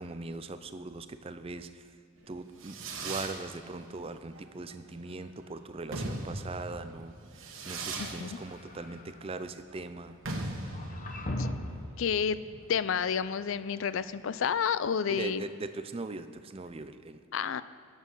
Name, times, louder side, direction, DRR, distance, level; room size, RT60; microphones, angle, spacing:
voice 1, 0.0-1.9 2.3-10.2 15.1-17.2, right 3 dB, 25° right, 11 dB, 0.4 m, -40 dB
Fireworks, 2.2-14.5, right 2 dB, 65° right, 1.3 m, -41 dB
voice 2, 8.0-8.4 11.4-11.5 12.0-12.4 12.7-15.5 17.3-17.6, left 7 dB, 65° left, 15 dB, 0.4 m, -30 dB
sound 1, 8.3-9.2 10.6-11.9, left 1 dB, 35° left, 0.8 m, -37 dB
12.5 x 7.4 x 5.5 m, 2.4 s
head